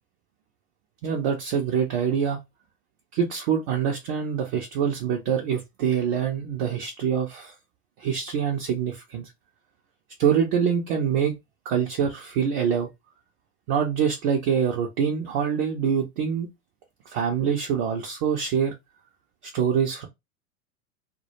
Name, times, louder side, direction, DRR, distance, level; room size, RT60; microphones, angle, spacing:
voice 1, 1.0-2.4 3.1-7.5 8.0-9.3 10.2-11.3 11.7-12.9 13.7-16.5 17.1-18.7 19.5-20.0, right 7 dB, 30° right, 0.4 m, -25 dB
2.1 x 2.1 x 2.8 m
figure-of-eight pair, 100°, 46 cm